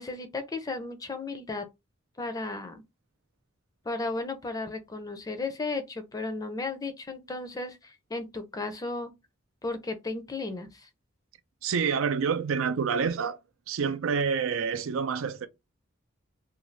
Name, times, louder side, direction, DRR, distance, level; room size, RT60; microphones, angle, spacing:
voice 1, 0.0-1.7 2.2-2.8 3.9-9.1 9.6-10.9, left 3 dB, 20° left, 0.4 m, -34 dB
voice 2, 11.6-13.4 13.7-15.5, right 6 dB, 90° right, 0.4 m, -27 dB
2.5 x 2.3 x 3.1 m
head